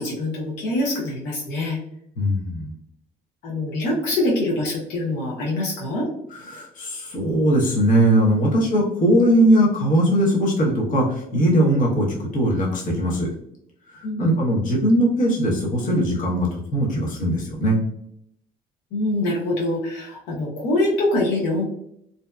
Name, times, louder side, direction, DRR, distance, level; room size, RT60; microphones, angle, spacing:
voice 1, 0.0-1.8 3.4-6.1 14.0-14.3 18.9-21.6, left 1 dB, 90° left, -3 dB, 0.7 m, -24 dB
voice 2, 2.2-2.7 6.3-13.3 13.9-17.8, right 1 dB, 50° left, -3 dB, 0.9 m, -20 dB
2.7 x 2.1 x 2.2 m, 0.74 s
cardioid pair, 110°, 17 cm